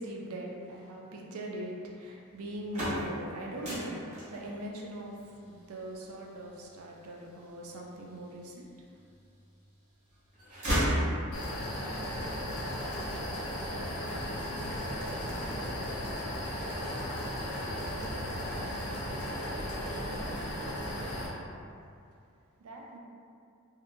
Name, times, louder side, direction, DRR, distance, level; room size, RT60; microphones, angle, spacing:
voice 1, 0.0-5.1 5.4-8.7 21.2-21.3 22.6-23.0, right 1 dB, 75° right, -1 dB, 0.4 m, -41 dB
sound 1, 2.5-8.4 9.0-9.8 10.1-11.7, equal, 30° right, 0.7 m, -34 dB
sound 2, 11.3-21.3, equal, 85° left, 0.6 m, -35 dB
voice 2, 11.7-16.4 16.9-20.6, right 1 dB, 10° left, -12 dB, 0.8 m, -51 dB
2.7 x 2.1 x 2.6 m, 2.4 s
head